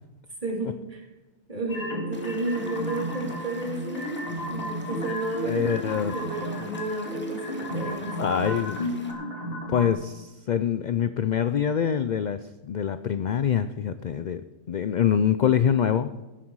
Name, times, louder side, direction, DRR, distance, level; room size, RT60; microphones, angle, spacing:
voice 1, 0.4-1.0 1.5-4.2 4.5-5.7 6.0-8.4, right 2 dB, 35° right, -1 dB, 2.9 m, -32 dB
sound 1, 1.7-9.9, equal, 45° left, 3.0 m, -33 dB
Stream / Liquid, 2.1-9.1, equal, 10° left, 1.8 m, -48 dB
voice 2, 5.4-6.2 8.2-8.9 9.7-12.4 12.6-14.4 14.7-16.1, left 8 dB, 65° left, 11 dB, 0.4 m, -25 dB
15.0 x 11.5 x 4.7 m, 1.1 s
omnidirectional pair, 1.4 m